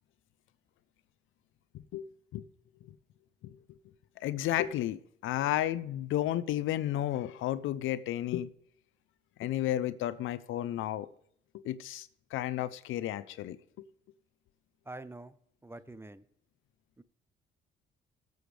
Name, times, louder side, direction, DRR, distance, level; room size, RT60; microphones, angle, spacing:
voice 1, 1.9-2.5 3.4-3.6 4.2-8.5 9.4-11.1 11.6-13.6, left 13 dB, 85° left, 0.6 m, -32 dB
voice 2, 14.9-15.3 15.6-16.3 17.0-17.1, right 2 dB, 10° right, 0.6 m, -45 dB
19.0 x 7.8 x 3.3 m
cardioid pair, 90°, 20 cm